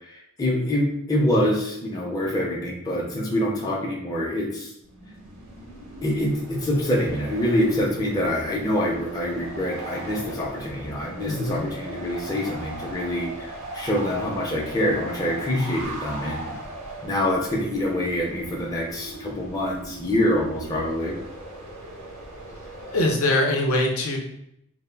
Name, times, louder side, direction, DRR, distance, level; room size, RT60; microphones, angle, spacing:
voice 1, 0.1-4.7 6.0-16.5 17.0-21.2, left 1 dB, 15° left, -3 dB, 0.4 m, -25 dB
sound 1, 4.8-23.2, right 2 dB, 80° right, 0.8 m, -39 dB
voice 2, 11.2-11.6 22.9-24.2, left 1 dB, 75° left, 1 dB, 0.6 m, -22 dB
2.2 x 2.0 x 3.2 m, 0.78 s
head